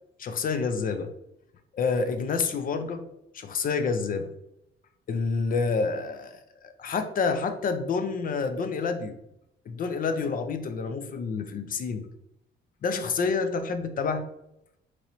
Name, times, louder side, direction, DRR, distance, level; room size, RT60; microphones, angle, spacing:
voice 1, 0.2-1.1 1.7-3.1 3.3-4.3 5.1-9.2 9.7-12.1 12.8-14.3, left 4 dB, 45° left, 8 dB, 0.4 m, -28 dB
3.0 x 2.6 x 2.9 m, 0.82 s
cardioid pair, 90°, 20 cm